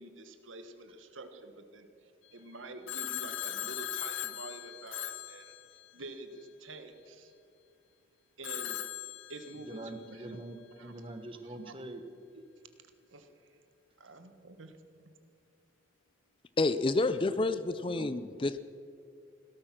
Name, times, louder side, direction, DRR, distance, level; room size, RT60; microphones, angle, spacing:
voice 1, 0.0-5.5 5.9-7.3 8.4-8.8 9.3-10.4 10.7-11.0 11.4-11.7 12.3-12.4 13.1-13.3 14.0-15.1, right 2 dB, 80° right, 8 dB, 1.5 m, -48 dB
Telephone, 2.9-6.2 8.4-10.0, left 12 dB, 75° left, 0.8 m, -39 dB
voice 2, 9.7-12.0 17.9-18.2, right 1 dB, 25° right, 6 dB, 1.1 m, -44 dB
voice 3, 16.6-18.6, left 2 dB, 25° left, 13 dB, 0.4 m, -29 dB
17.0 x 13.0 x 5.9 m, 2.5 s
head